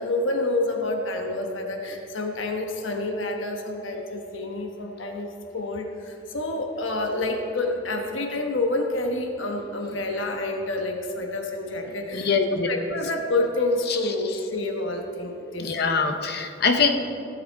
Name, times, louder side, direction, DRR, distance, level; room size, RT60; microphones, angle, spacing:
voice 1, 0.0-12.3 12.7-15.8, left 2 dB, 85° left, 3 dB, 1.2 m, -28 dB
voice 2, 12.1-12.7 15.6-16.9, left 5 dB, 55° left, 5 dB, 0.8 m, -23 dB
16.0 x 7.3 x 4.6 m, 2.7 s
head